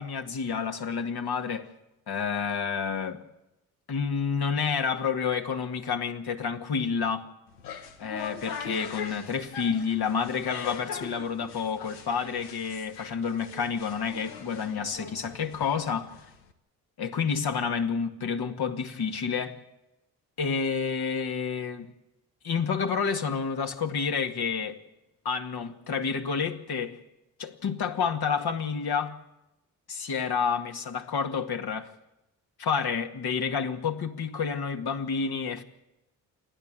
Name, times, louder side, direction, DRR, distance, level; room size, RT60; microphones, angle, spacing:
voice 1, 0.0-1.7 2.1-3.2 3.9-7.3 8.0-16.1 17.0-19.6 20.4-21.9 22.4-24.8 25.2-27.0 27.4-29.1 29.9-31.9 32.6-35.6, left 6 dB, 55° left, 2.1 m, -29 dB
sound 1, 7.5-16.5, left 6 dB, 90° left, 1.4 m, -41 dB
28.5 x 11.5 x 9.1 m
hypercardioid pair, 45°, 46 cm